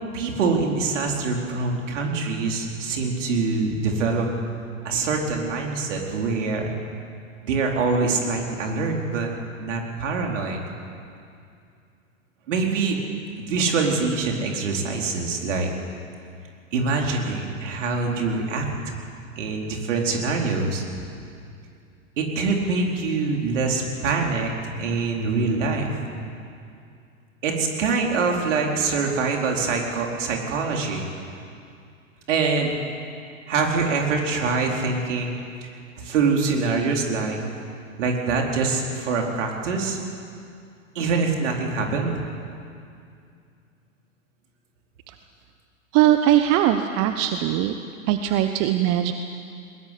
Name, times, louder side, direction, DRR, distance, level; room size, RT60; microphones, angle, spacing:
voice 1, 0.1-4.3 4.8-6.7 7.4-9.3 9.6-10.6 12.5-13.0 13.4-15.7 16.7-18.7 19.4-20.8 22.2-24.5 24.8-25.9 27.4-31.1 32.3-32.7 33.5-35.4 35.6-35.7 36.0-37.4 38.0-40.0 40.9-42.2, right 4 dB, 60° right, 1 dB, 4.5 m, -24 dB
voice 2, 45.9-47.7 48.1-49.1, right 12 dB, 35° right, 8 dB, 1.1 m, -20 dB
22.0 x 20.5 x 8.5 m, 2.4 s
figure-of-eight pair, 100°, 41 cm